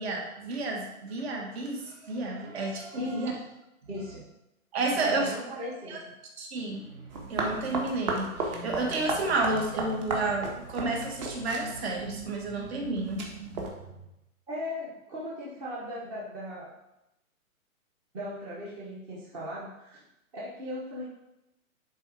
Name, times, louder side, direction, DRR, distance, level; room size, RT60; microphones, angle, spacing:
voice 1, 0.0-3.3 4.7-5.3 5.9-6.0 6.4-13.7, right 2 dB, 45° right, 1 dB, 1.9 m, -31 dB
voice 2, 3.0-3.4 3.9-4.2 5.0-6.0 14.5-16.7 18.1-20.0 20.3-21.0, left 1 dB, 15° right, -6 dB, 0.9 m, -37 dB
sound 1, 7.1-13.7, right 3 dB, 30° right, 1.4 m, -35 dB
10.0 x 4.1 x 4.8 m, 0.91 s
hypercardioid pair, 160°, 42 cm